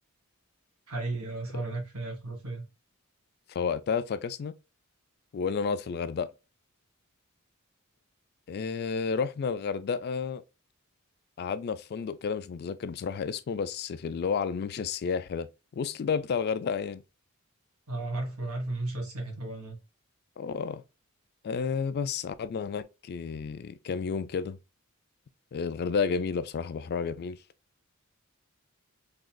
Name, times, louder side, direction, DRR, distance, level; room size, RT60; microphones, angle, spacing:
voice 1, 0.9-2.7 17.9-19.8, right 2 dB, 85° right, 1.4 m, -34 dB
voice 2, 3.5-4.5 5.3-6.3 8.5-10.4 11.4-15.5 15.7-17.0 20.4-20.8 21.4-24.6 25.5-27.4, left 5 dB, 50° left, 0.3 m, -31 dB
3.8 x 2.9 x 2.2 m
head